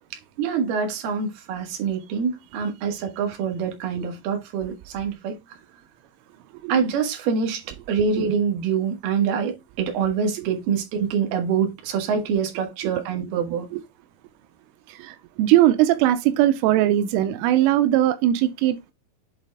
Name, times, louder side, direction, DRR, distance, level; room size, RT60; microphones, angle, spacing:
voice 1, 0.4-5.3 6.7-13.7, right 6 dB, 60° right, 3.3 m, -25 dB
voice 2, 14.9-18.9, right 13 dB, 90° right, 3.3 m, -20 dB
8.6 x 4.1 x 3.5 m
omnidirectional pair, 5.6 m